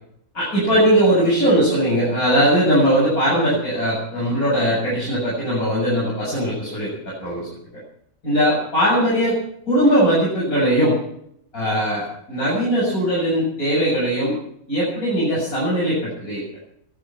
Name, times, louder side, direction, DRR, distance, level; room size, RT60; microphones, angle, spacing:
voice 1, 0.3-7.8 8.2-9.4 9.7-11.0 11.5-14.4 14.7-16.4, equal, 80° left, -6 dB, 8.1 m, -20 dB
23.0 x 10.5 x 5.9 m, 0.70 s
omnidirectional pair, 1.5 m